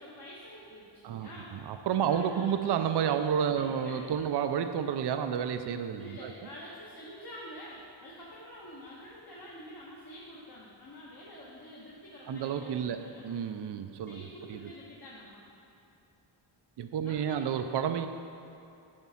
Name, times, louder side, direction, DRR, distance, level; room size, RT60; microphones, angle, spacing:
voice 1, 0.0-1.5 2.0-2.5 3.5-4.0 5.9-13.2 14.1-15.4 17.0-17.6, equal, 50° left, -6 dB, 1.3 m, -47 dB
voice 2, 1.0-6.3 12.3-14.2 14.5-14.7 16.8-18.1, right 8 dB, 60° right, 9 dB, 0.5 m, -30 dB
9.6 x 3.6 x 5.7 m, 2.8 s
wide cardioid pair, 80°, 46 cm